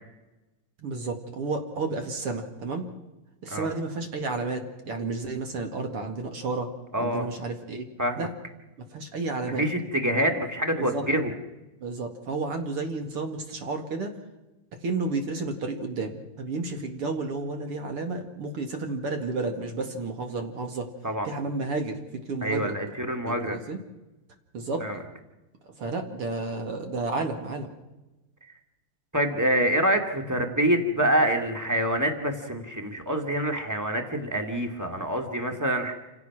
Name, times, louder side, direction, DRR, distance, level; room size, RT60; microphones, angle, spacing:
voice 1, 0.8-2.8 3.4-6.7 7.0-7.9 8.2-8.3 8.8-9.7 10.7-11.0 11.8-14.1 14.8-20.9 21.2-22.7 23.3-23.8 24.5-24.8 25.8-27.7, right 3 dB, 45° right, 4 dB, 2.5 m, -31 dB
voice 2, 6.9-7.2 8.0-8.3 9.4-11.3 21.0-21.3 22.4-23.6 24.8-25.0 29.1-35.9, right 1 dB, 10° right, 4 dB, 1.2 m, -26 dB
29.0 x 17.0 x 6.1 m, 1.0 s
omnidirectional pair, 4.4 m